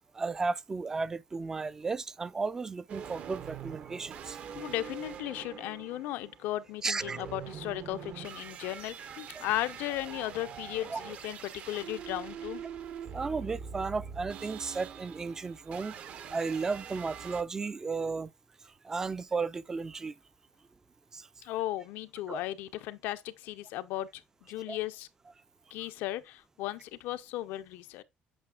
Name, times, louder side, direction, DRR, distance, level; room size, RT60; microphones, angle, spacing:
voice 1, 0.1-4.4 6.8-7.2 10.9-11.0 13.1-16.0 16.3-18.3 18.8-20.2 21.1-21.3 22.3-22.4 24.7-24.8, right 4 dB, 15° right, 0.3 m, -34 dB
sound 1, 2.9-17.4, right 8 dB, 45° right, 0.7 m, -44 dB
voice 2, 4.5-12.6 21.4-25.1 25.7-28.0, left 15 dB, 85° left, 0.7 m, -36 dB
8.7 x 5.7 x 2.3 m
cardioid pair, 165°, 3 cm